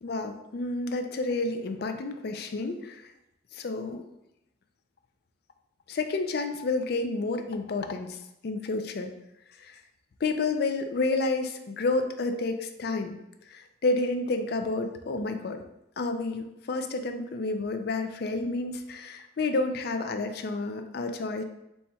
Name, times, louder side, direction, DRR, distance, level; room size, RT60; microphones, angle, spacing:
voice 1, 0.0-3.1 3.5-4.0 5.9-9.1 9.6-9.8 10.2-13.2 13.5-15.6 16.0-21.4, left 3 dB, 55° left, 6 dB, 0.4 m, -30 dB
4.1 x 2.3 x 4.3 m, 0.86 s
head